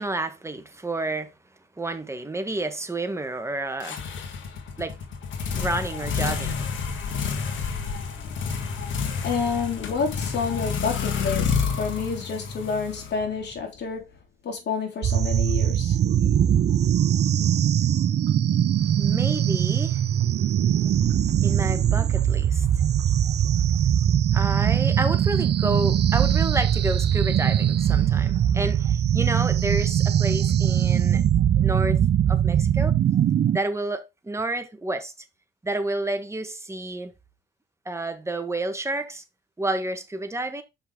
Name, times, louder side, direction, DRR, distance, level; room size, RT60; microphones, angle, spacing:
voice 1, 0.0-1.3 1.8-4.0 4.8-5.0 5.5-6.7 7.1-7.2 19.0-20.0 21.4-22.7 24.3-31.2 31.6-32.0 32.3-32.9 33.5-35.1 35.6-37.1 37.8-39.2 39.6-40.6, right 2 dB, 15° right, 1.3 m, -30 dB
sound 1, 3.8-13.6, left 5 dB, 75° left, 1.7 m, -29 dB
voice 2, 9.2-14.1 14.4-16.0, left 5 dB, 60° left, 3.2 m, -29 dB
sound 2, 15.0-33.6, right 10 dB, 55° right, 0.7 m, -21 dB
sound 3, 16.3-28.7 28.9-29.0 29.3-29.6, left 2 dB, 25° left, 3.5 m, -46 dB
6.1 x 5.5 x 3.7 m
cardioid pair, 90°, 20 cm